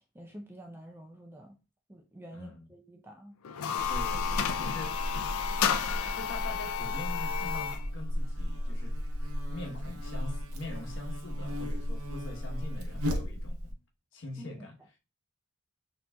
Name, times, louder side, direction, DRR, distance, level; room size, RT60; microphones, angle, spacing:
voice 1, 0.1-1.5 1.9-3.3 14.4-14.5, right 1 dB, 10° right, 0.5 m, -48 dB
voice 2, 2.3-2.7 3.9-5.0 6.1-9.0 9.5-13.7 14.1-14.8, left 2 dB, 55° left, 1.0 m, -43 dB
sound 1, 3.4-7.9, left 8 dB, 75° left, 0.4 m, -32 dB
Buzz, 3.8-13.7, equal, 70° right, 0.8 m, -35 dB
6.5 x 3.0 x 2.3 m
head